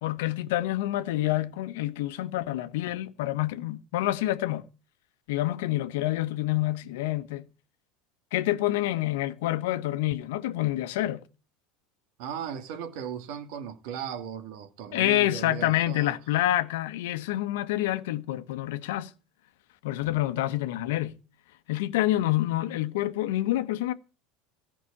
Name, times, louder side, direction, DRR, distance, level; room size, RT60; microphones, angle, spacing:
voice 1, 0.0-4.6 5.3-7.5 8.3-11.2 14.9-19.1 19.8-21.1 21.7-23.9, left 15 dB, 85° left, 1.1 m, -27 dB
voice 2, 12.2-16.2, right 8 dB, 70° right, 2.2 m, -37 dB
14.0 x 6.0 x 8.5 m
supercardioid pair, 130°, 0 cm